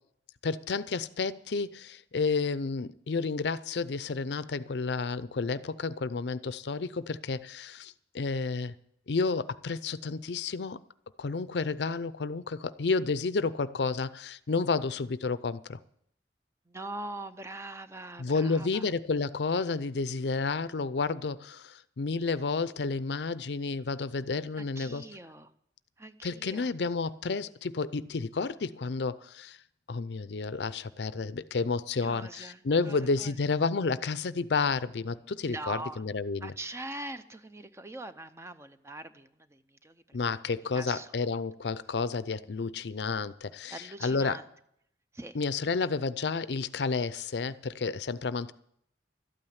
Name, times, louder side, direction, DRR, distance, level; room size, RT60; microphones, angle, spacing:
voice 1, 0.4-8.7 9.1-10.8 11.2-15.8 18.2-25.1 26.2-29.6 29.9-36.5 40.1-44.4 45.3-48.5, left 4 dB, 70° left, 0.5 m, -31 dB
voice 2, 16.7-18.9 24.6-25.5 26.0-26.7 32.0-33.3 35.4-36.0 36.4-40.2 40.7-41.3 43.7-44.4 45.1-45.4, right 2 dB, 15° right, 0.7 m, -42 dB
12.5 x 8.9 x 9.4 m
head